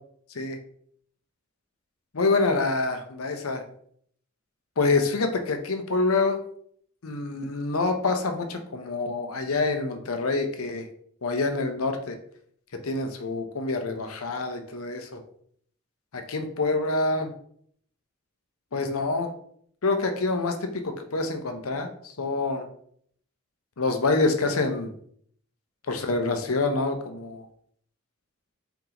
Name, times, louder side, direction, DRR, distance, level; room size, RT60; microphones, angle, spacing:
voice 1, 2.1-3.6 4.8-6.4 7.0-10.9 11.2-12.2 12.8-15.2 16.1-17.3 18.7-19.3 19.8-22.7 23.8-24.9 25.9-27.5, left 3 dB, 80° left, 6 dB, 0.7 m, -26 dB
4.5 x 2.9 x 3.8 m, 0.63 s
head